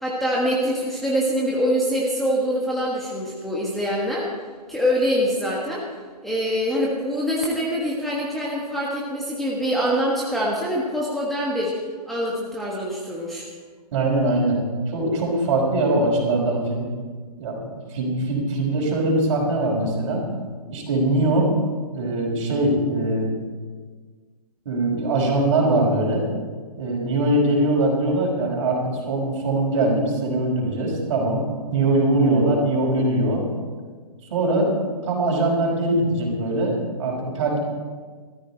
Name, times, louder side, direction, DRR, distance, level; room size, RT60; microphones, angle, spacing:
voice 1, 0.0-4.3 4.7-5.9 6.2-11.8 12.1-13.5, equal, ahead, -5 dB, 1.3 m, -24 dB
voice 2, 13.9-14.6 14.9-16.9 17.4-20.2 20.7-21.5 21.9-23.3 24.7-26.2 26.8-28.8 29.1-31.4 31.7-33.4 34.3-34.7 35.0-37.6, right 2 dB, 50° right, -1 dB, 5.3 m, -22 dB
16.0 x 14.0 x 4.4 m, 1.5 s
hypercardioid pair, 150°, 21 cm